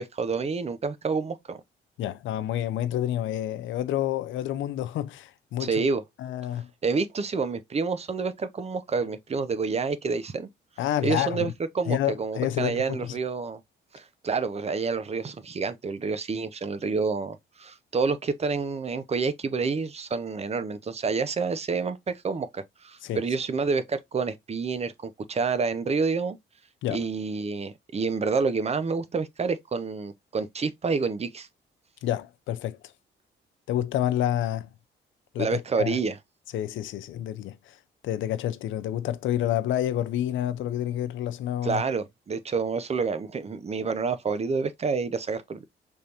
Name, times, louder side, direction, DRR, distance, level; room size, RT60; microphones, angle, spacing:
voice 1, 0.0-1.6 5.6-6.0 6.8-10.5 11.0-13.6 13.9-26.4 26.9-31.5 35.4-36.2 41.6-45.6, right 4 dB, 30° right, 0.7 m, -28 dB
voice 2, 2.0-5.9 6.2-6.7 10.8-11.5 11.9-13.1 23.0-23.2 26.8-27.0 32.0-32.8 33.7-34.7 35.3-36.0 36.5-37.8 38.0-41.8, left 12 dB, 80° left, 0.6 m, -29 dB
5.3 x 3.3 x 2.8 m
cardioid pair, 90°, 20 cm